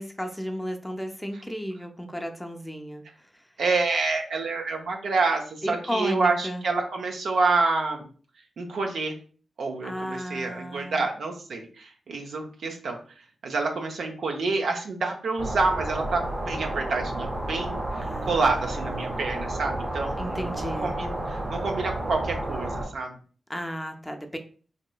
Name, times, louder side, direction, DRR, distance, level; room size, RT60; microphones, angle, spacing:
voice 1, 0.0-3.0 5.6-6.6 9.8-11.1 18.0-19.2 20.2-20.9 23.5-24.4, equal, 5° left, 5 dB, 0.5 m, -34 dB
voice 2, 3.6-8.1 8.6-9.2 9.6-13.0 13.4-23.2, right 3 dB, 80° right, 2 dB, 0.5 m, -28 dB
sound 1, 15.4-22.9, right 1 dB, 30° right, 0.7 m, -31 dB
3.1 x 2.8 x 2.2 m, 0.41 s
cardioid pair, 45°, 0 cm